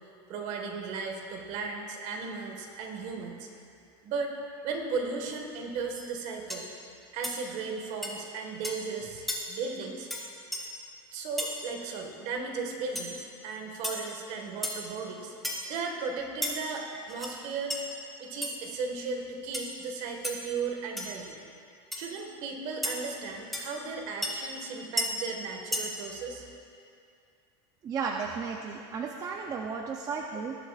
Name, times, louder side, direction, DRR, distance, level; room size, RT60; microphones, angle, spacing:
voice 1, 0.3-3.5 4.0-4.3 4.6-6.7 7.1-10.1 11.1-15.3 15.7-17.9 18.2-21.3 21.9-26.4, right 4 dB, 50° right, 3 dB, 1.5 m, -36 dB
sound 1, 5.9-6.1 6.5-6.7 7.2-7.4 8.0-8.1 8.6-8.8 9.3-9.4 10.1-10.2 10.5-10.6 11.4-11.5 12.9-13.1 13.8-14.0 14.6-14.8 15.4-15.7 16.4-16.5 17.1-17.3 17.7-17.8 18.4-18.5 19.5-19.7 20.2-20.3 21.0-21.1 21.9-22.0 22.8-22.9 23.5-23.6 24.2-24.3 25.0-25.1 25.7-25.8, left 1 dB, ahead, 1.2 m, -32 dB
voice 2, 27.8-30.6, right 5 dB, 25° right, 1 dB, 0.5 m, -34 dB
19.0 x 8.0 x 2.4 m, 2.5 s
supercardioid pair, 140°, 14 cm